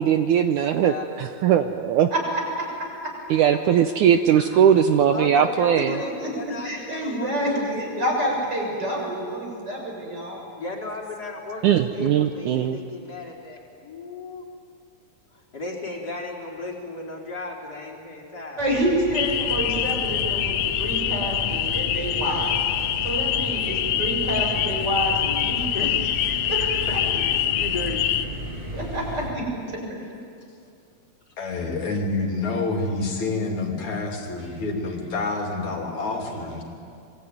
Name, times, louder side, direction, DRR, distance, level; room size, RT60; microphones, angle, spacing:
voice 1, 0.0-2.1 3.3-6.0 11.6-12.8, right 9 dB, 80° right, 8 dB, 1.8 m, -19 dB
voice 2, 0.7-1.1 3.3-3.4 5.1-8.1 10.6-11.6 11.9-14.4 15.5-18.7 23.1-23.2 25.6-25.9 26.6-26.8 27.2-28.1 34.4-34.6 34.9-35.0, left 2 dB, 25° left, -2 dB, 4.5 m, -35 dB
voice 3, 2.1-3.2 3.5-3.6 6.2-6.3 6.6-7.7 8.0-10.4 18.6-22.5 23.0-25.7 26.0-27.0 28.7-29.8, right 1 dB, 25° right, -1 dB, 7.1 m, -28 dB
sound 1, 18.6-29.3, equal, 10° right, 3.4 m, -34 dB
sound 2, 19.1-28.3, left 11 dB, 75° left, 2.7 m, -25 dB
voice 4, 31.4-36.6, left 3 dB, 50° left, 1 dB, 4.0 m, -28 dB
26.5 x 23.5 x 9.4 m, 2.4 s
omnidirectional pair, 4.5 m